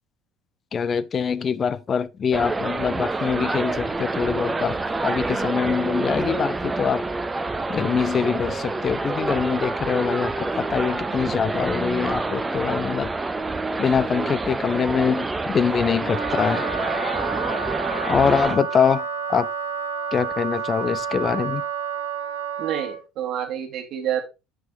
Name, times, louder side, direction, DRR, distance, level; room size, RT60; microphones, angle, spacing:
voice 1, 0.7-4.8 5.0-7.0 7.7-13.1 13.8-16.6 18.0-19.5 20.1-21.6, left 6 dB, 30° left, 0.5 m, -24 dB
sound 1, 2.3-18.6, right 3 dB, 15° right, 0.8 m, -27 dB
Wind instrument woodwind instrument, 16.0-23.0, right 6 dB, 75° right, 0.7 m, -30 dB
voice 2, 22.6-24.2, right 10 dB, 45° right, 2.0 m, -28 dB
7.6 x 6.0 x 3.9 m
figure-of-eight pair, 60°, 0 cm